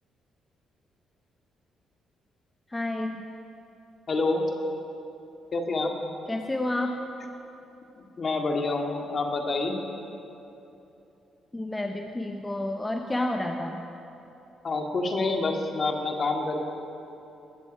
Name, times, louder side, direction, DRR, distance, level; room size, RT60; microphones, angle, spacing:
voice 1, 2.7-3.2 6.3-7.0 11.5-13.8, left 1 dB, 15° left, 3 dB, 0.9 m, -30 dB
voice 2, 4.1-4.4 5.5-5.9 8.2-9.8 14.6-16.6, left 3 dB, 45° left, 2 dB, 2.0 m, -27 dB
21.0 x 8.2 x 7.4 m, 2.9 s
cardioid pair, 90°, 0 cm